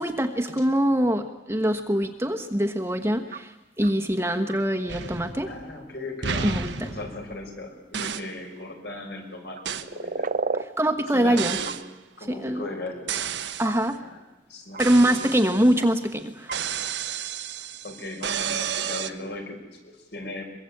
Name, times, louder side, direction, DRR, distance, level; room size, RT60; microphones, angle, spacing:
voice 1, 0.0-5.5 6.4-6.9 10.6-11.6 12.3-12.6 13.6-14.0 14.8-16.6, right 1 dB, 15° right, 7 dB, 1.3 m, -24 dB
sound 1, 3.3-3.4 3.8-3.9 4.5-4.6 7.1-7.2 9.6-10.7 11.6-11.8 13.1-13.2 13.6-13.8 14.7-14.8 15.8-15.9 16.5-16.6, right 3 dB, 45° right, 0.9 m, -30 dB
sound 2, 4.9-5.8 6.2-7.6 7.9-8.4 9.6-9.9 11.4-11.9 13.1-13.8 14.8-15.9 16.5-19.1, right 7 dB, 75° right, 1.1 m, -32 dB
voice 2, 5.4-10.3 11.1-11.7 12.2-13.1 14.0-14.2 14.5-15.4 17.1-17.2 17.8-20.4, left 2 dB, 60° left, 3 dB, 6.0 m, -37 dB
23.0 x 23.0 x 8.7 m, 1.1 s
head